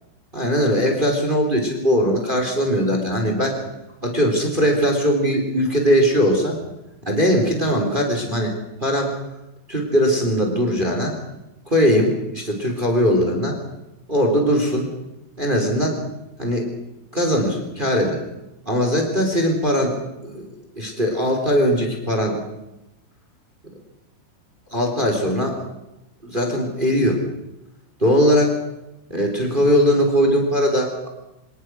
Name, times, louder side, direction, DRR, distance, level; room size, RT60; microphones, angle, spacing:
voice 1, 0.3-3.6 4.0-6.6 7.0-8.5 8.8-9.1 9.7-11.1 11.7-13.6 14.1-14.9 15.4-16.0 16.4-16.7 17.1-18.2 18.6-19.9 20.2-22.4 24.7-25.6 26.2-27.2 28.0-28.5 29.1-31.1, equal, 10° right, 3 dB, 3.4 m, -20 dB
28.0 x 18.5 x 6.3 m, 0.93 s
omnidirectional pair, 5.8 m